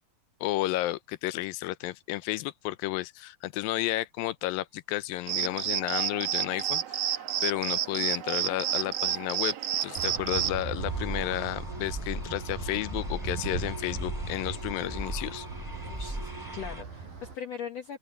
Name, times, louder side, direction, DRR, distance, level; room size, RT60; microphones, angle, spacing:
voice 1, 0.4-9.6 9.8-15.5, left 16 dB, 85° left, 2.5 m, -32 dB
sound 1, 5.3-10.6, right 11 dB, 60° right, 1.8 m, -30 dB
sound 2, 9.9-17.4, right 5 dB, 85° right, 7.2 m, -38 dB
sound 3, 10.8-16.8, right 1 dB, 5° right, 4.0 m, -38 dB
voice 2, 15.8-18.0, left 7 dB, 60° left, 2.2 m, -40 dB
open air
omnidirectional pair, 4.0 m